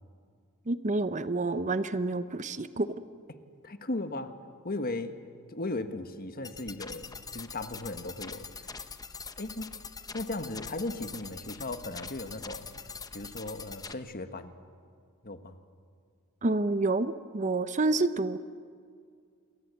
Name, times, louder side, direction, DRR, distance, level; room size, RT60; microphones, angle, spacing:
voice 1, 0.7-2.9 16.4-18.4, right 2 dB, 35° right, 12 dB, 0.7 m, -28 dB
voice 2, 3.6-4.3 4.6-5.2 5.5-8.5 9.4-9.7 10.1-12.7 13.1-14.5 15.2-15.6, left 2 dB, 45° left, 8 dB, 1.5 m, -36 dB
sound 1, 6.4-13.9, left 5 dB, 15° left, 0.8 m, -43 dB
28.5 x 22.5 x 8.2 m, 2.2 s
head